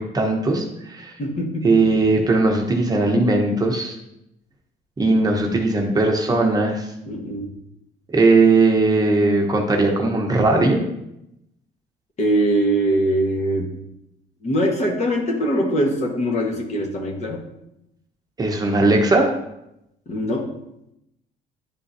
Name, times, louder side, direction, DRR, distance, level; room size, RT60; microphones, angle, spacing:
voice 1, 0.0-1.1 1.6-3.9 5.0-6.8 8.1-10.8 18.4-19.3, right 2 dB, 20° right, 1 dB, 0.9 m, -18 dB
voice 2, 1.2-1.8 5.1-5.2 7.1-7.5 12.2-13.7 14.4-17.4 20.1-20.5, right 1 dB, 40° left, 0 dB, 1.3 m, -22 dB
10.0 x 3.8 x 2.7 m, 0.83 s
cardioid pair, 110°, 17 cm